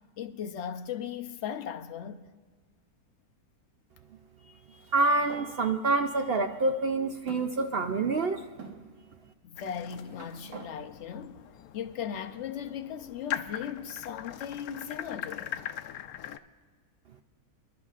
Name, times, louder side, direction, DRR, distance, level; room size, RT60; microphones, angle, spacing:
voice 1, 0.2-2.3 9.4-11.4 11.7-15.6, left 8 dB, 60° left, 0.9 m, -37 dB
sound 1, 4.7-5.5 6.3-6.4 7.3-8.1 8.6-8.8 9.7-10.7, right 5 dB, 80° right, 1.9 m, -47 dB
voice 2, 4.9-8.4, right 3 dB, 65° right, 0.6 m, -27 dB
sound 2, 9.6-16.4, left 10 dB, 85° left, 1.0 m, -41 dB
28.0 x 11.5 x 2.4 m
omnidirectional pair, 1.5 m